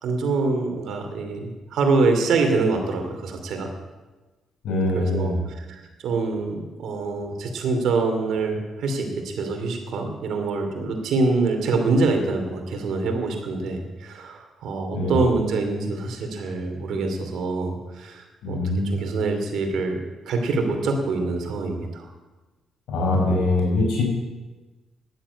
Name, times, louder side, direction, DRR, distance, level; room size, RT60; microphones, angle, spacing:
voice 1, 0.0-3.7 4.9-18.6 18.8-22.1, right 3 dB, 75° right, 4 dB, 2.7 m, -25 dB
voice 2, 4.6-5.4 14.9-15.2 18.4-19.0 22.9-24.1, left 2 dB, 80° left, 0 dB, 5.2 m, -23 dB
11.0 x 10.0 x 8.4 m, 1.2 s
cardioid pair, 90°, 0 cm